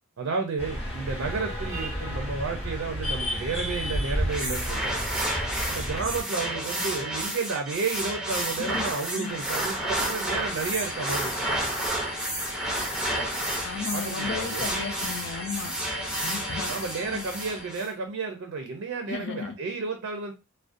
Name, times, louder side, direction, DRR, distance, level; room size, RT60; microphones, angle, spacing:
voice 1, 0.2-5.0 5.7-11.5 13.9-14.7 16.7-20.3, right 4 dB, 65° right, 3 dB, 0.4 m, -32 dB
sound 1, 0.6-6.2, equal, 30° left, 0.7 m, -31 dB
sound 2, 4.3-17.9, right 1 dB, 5° right, 0.4 m, -31 dB
voice 2, 8.5-8.9 9.1-9.4 13.6-15.7 16.2-16.7 17.1-17.2 19.1-19.5, left 6 dB, 60° left, 6 dB, 0.4 m, -34 dB
sound 3, 10.4-17.7, left 2 dB, 80° left, 0.8 m, -40 dB
2.4 x 2.1 x 2.4 m, 0.27 s
head